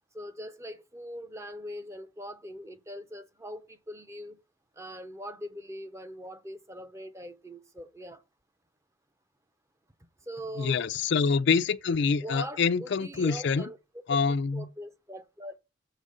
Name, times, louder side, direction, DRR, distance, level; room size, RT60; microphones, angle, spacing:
voice 1, 0.1-4.4 4.8-8.2 10.2-10.9 11.9-13.8 14.5-15.6, equal, 15° right, 0.6 m, -42 dB
voice 2, 10.6-13.6 14.1-14.7, left 5 dB, 60° left, 0.4 m, -26 dB
7.0 x 5.0 x 5.3 m
head